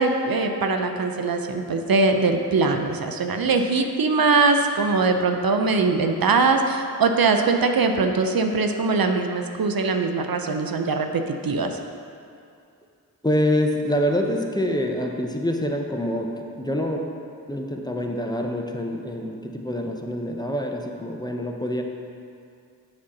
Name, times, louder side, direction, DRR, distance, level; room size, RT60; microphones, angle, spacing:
voice 1, 0.0-11.8, right 3 dB, 65° right, 5 dB, 0.6 m, -22 dB
voice 2, 13.2-17.1 17.5-21.8, equal, 10° left, 2 dB, 0.7 m, -26 dB
7.5 x 4.3 x 5.9 m, 2.4 s
cardioid pair, 45°, 38 cm